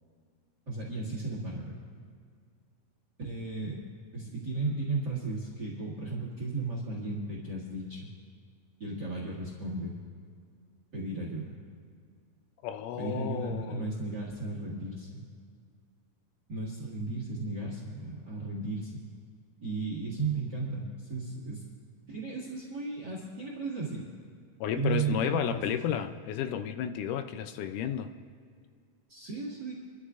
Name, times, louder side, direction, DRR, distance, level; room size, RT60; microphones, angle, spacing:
voice 1, 0.7-1.7 3.2-3.8 4.1-8.1 8.8-10.0 10.9-11.6 13.0-15.3 16.5-19.0 19.6-21.6 22.1-24.0 24.8-25.6 29.1-29.7, right 3 dB, 35° right, -4 dB, 2.1 m, -35 dB
voice 2, 12.6-13.9 24.6-28.1, left 9 dB, 80° left, 9 dB, 2.1 m, -32 dB
27.5 x 13.0 x 2.5 m, 2.2 s
omnidirectional pair, 3.8 m